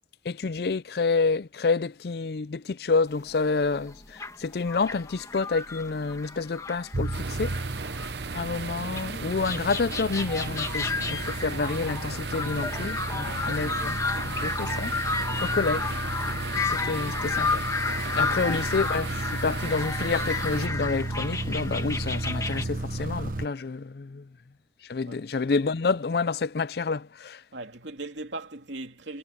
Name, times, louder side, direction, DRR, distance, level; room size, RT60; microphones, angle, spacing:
voice 1, 0.2-7.6 8.3-15.0 15.4-15.9 16.6-17.6 18.1-24.3 24.8-27.4, left 4 dB, 60° left, 0.5 m, -28 dB
sound 1, 3.3-3.4 3.6-8.5 8.9-22.6, left 4 dB, 20° left, 1.5 m, -32 dB
sound 2, 6.9-23.5, right 2 dB, 50° right, 1.0 m, -34 dB
sound 3, 7.1-20.7, right 5 dB, 70° right, 0.9 m, -37 dB
voice 2, 13.2-13.9 18.0-18.5 25.0-25.1 27.5-29.2, right 2 dB, 90° right, 2.8 m, -40 dB
head